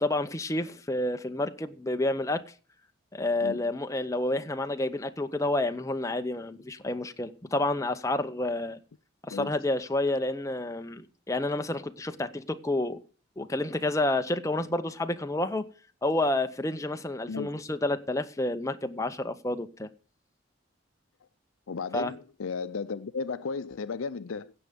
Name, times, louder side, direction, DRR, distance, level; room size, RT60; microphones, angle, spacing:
voice 1, 0.0-2.4 3.1-8.8 9.2-13.0 13.4-15.6 16.0-19.9 21.9-22.1, left 2 dB, 15° left, 0.7 m, -29 dB
voice 2, 21.7-24.5, left 5 dB, 85° left, 0.5 m, -34 dB
16.5 x 6.8 x 5.1 m
head